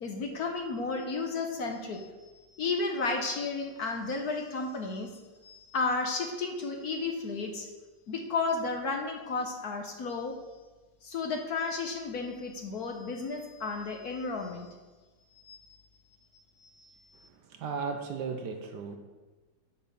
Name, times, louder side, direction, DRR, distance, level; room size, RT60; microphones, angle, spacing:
voice 1, 0.0-5.1 5.4-7.7 8.1-10.4 11.0-14.7 15.4-15.8 16.1-16.2 16.6-17.0, left 3 dB, 55° left, 4 dB, 1.2 m, -33 dB
voice 2, 17.4-19.0, right 5 dB, 65° right, 5 dB, 1.3 m, -35 dB
8.2 x 5.6 x 6.8 m, 1.2 s
omnidirectional pair, 2.2 m